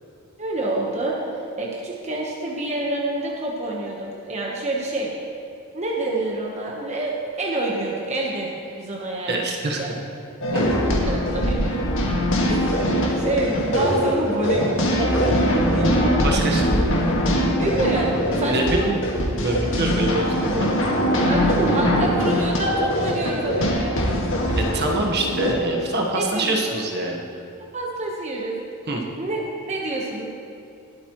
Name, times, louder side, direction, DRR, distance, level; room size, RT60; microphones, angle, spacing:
voice 1, 0.4-1.2 1.6-5.1 5.7-9.4 9.8-9.9 10.8-11.8 12.5-12.8 13.1-16.2 17.5-18.9 21.2-24.0 26.1-26.7 27.7-28.6 29.2-30.2, right 2 dB, 30° right, -2 dB, 1.2 m, -27 dB
voice 2, 9.3-9.8 10.5-10.7 16.2-16.7 18.5-19.0 19.4-20.7 24.6-27.3 28.9-29.0, right 2 dB, 50° right, 0 dB, 1.3 m, -25 dB
sound 1, 10.4-25.5, equal, 60° left, 1.9 m, -22 dB
21.0 x 8.2 x 3.1 m, 2.6 s
head